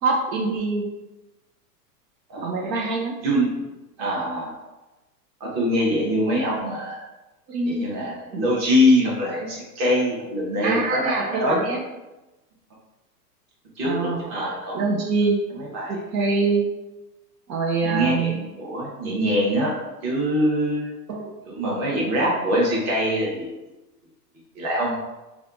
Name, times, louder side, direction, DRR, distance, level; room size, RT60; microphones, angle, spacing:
voice 1, 0.0-0.8 2.4-3.1 6.4-6.6 7.5-7.9 8.3-8.4 10.6-11.8 13.8-14.4 14.7-15.4 15.9-16.6 17.5-18.3 21.1-21.3, right 3 dB, 85° right, 0 dB, 0.7 m, -24 dB
voice 2, 2.3-2.7 3.2-3.5 4.0-4.5 5.4-7.0 7.8-11.6 13.8-15.0 15.5-15.9 17.8-19.7 20.0-20.9 21.4-23.5 24.5-25.0, equal, 35° right, -4 dB, 1.1 m, -23 dB
3.3 x 2.4 x 2.5 m, 1.1 s
hypercardioid pair, 125°, 49 cm